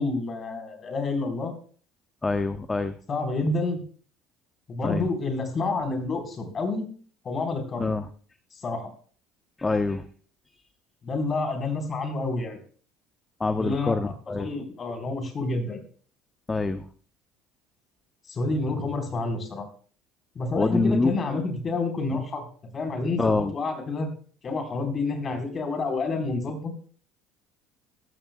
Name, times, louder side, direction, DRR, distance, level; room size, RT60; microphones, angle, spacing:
voice 1, 0.0-1.5 3.1-3.8 4.7-6.8 7.2-7.9 8.5-8.9 11.0-12.6 13.5-15.8 18.3-19.7 20.3-22.4 22.7-24.1 24.4-26.7, left 3 dB, 40° left, 4 dB, 4.3 m, -29 dB
voice 2, 2.2-2.9 4.8-5.0 7.8-8.0 9.6-10.0 13.4-14.5 16.5-16.8 20.5-21.1 23.2-23.5, left 3 dB, 20° left, 9 dB, 0.9 m, -25 dB
15.5 x 14.0 x 2.3 m, 0.43 s
hypercardioid pair, 70°, 0 cm